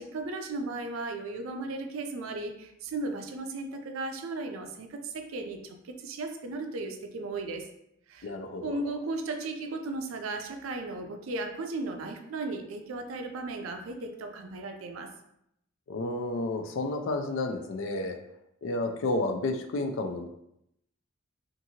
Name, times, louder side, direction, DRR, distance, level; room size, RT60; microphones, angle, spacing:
voice 1, 0.0-7.7 8.1-8.3 8.6-15.1, right 2 dB, 80° right, 5 dB, 0.4 m, -36 dB
voice 2, 8.2-8.8 15.9-18.2 18.6-20.3, left 2 dB, 65° left, 6 dB, 0.4 m, -31 dB
2.7 x 2.5 x 2.7 m, 0.78 s
head